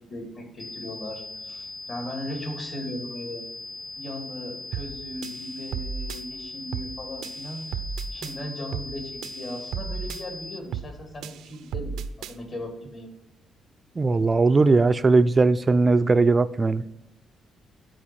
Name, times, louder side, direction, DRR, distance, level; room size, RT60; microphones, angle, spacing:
voice 1, 0.0-3.5 3.9-7.6 8.1-13.1, left 1 dB, 45° left, 2.5 m, -37 dB
sound 1, 0.6-10.6, left 2 dB, 5° left, 0.7 m, -39 dB
sound 2, 4.7-5.0 5.2-6.2 6.7-7.0 7.2-8.3 8.7-9.0 9.2-10.2 10.7-11.0 11.2-12.3, right 7 dB, 85° right, 0.5 m, -34 dB
voice 2, 14.0-16.8, right 3 dB, 30° right, 0.3 m, -19 dB
11.0 x 4.5 x 4.4 m
cardioid pair, 90°, 0 cm